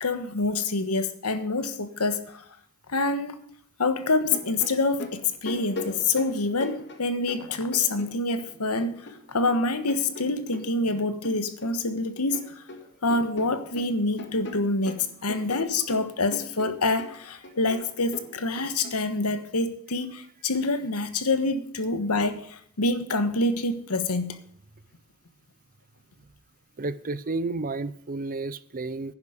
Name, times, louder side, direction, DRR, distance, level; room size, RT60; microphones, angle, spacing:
voice 1, 0.0-2.4 2.9-3.4 3.8-12.6 13.0-24.4, left 3 dB, 80° left, 1.3 m, -26 dB
sound 1, 4.2-8.5 8.8-11.8 12.1-12.8 13.1-19.0, left 2 dB, 55° left, 2.0 m, -40 dB
voice 2, 26.8-29.1, right 3 dB, 40° right, 0.6 m, -31 dB
11.0 x 10.0 x 5.1 m
head